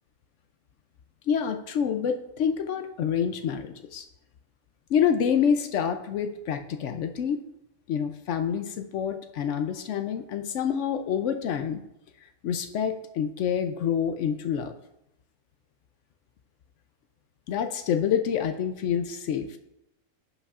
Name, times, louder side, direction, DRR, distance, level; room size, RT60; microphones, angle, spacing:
voice 1, 1.3-4.1 4.9-7.4 7.9-11.8 12.4-14.7 17.5-19.6, left 8 dB, 70° left, 7 dB, 0.8 m, -27 dB
11.0 x 5.4 x 2.4 m, 0.84 s
omnidirectional pair, 1.4 m